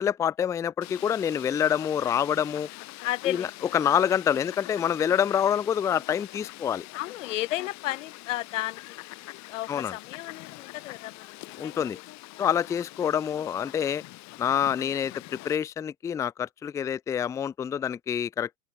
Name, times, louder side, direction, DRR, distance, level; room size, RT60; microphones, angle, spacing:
voice 1, 0.0-2.7 3.3-3.5 3.7-6.9 9.7-9.9 11.6-12.0 12.4-14.0 14.4-18.6, left 9 dB, 10° left, 0.4 m, -26 dB
Fowl, 0.8-15.6, left 20 dB, 40° left, 1.9 m, -44 dB
voice 2, 3.0-4.0 6.9-8.8 9.5-11.8 14.7-14.9, left 15 dB, 60° left, 1.8 m, -34 dB
open air
figure-of-eight pair, 80°, 42 cm